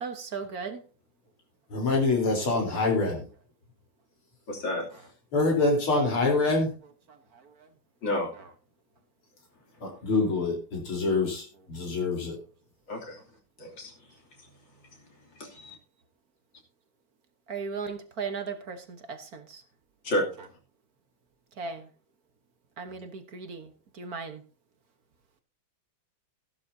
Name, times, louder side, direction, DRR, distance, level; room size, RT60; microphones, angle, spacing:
voice 1, 0.0-0.8 17.5-19.6 21.6-21.8 22.8-23.7 24.0-24.4, right 5 dB, 50° right, 1.5 m, -36 dB
voice 2, 1.7-3.2 5.3-6.7 9.8-12.4, left 3 dB, 80° left, 4.8 m, -25 dB
voice 3, 4.5-4.9 8.0-8.3 12.9-13.2 13.6-13.9 15.4-15.8 20.0-20.3, left 1 dB, 60° left, 3.7 m, -30 dB
14.5 x 11.5 x 2.8 m
omnidirectional pair, 2.4 m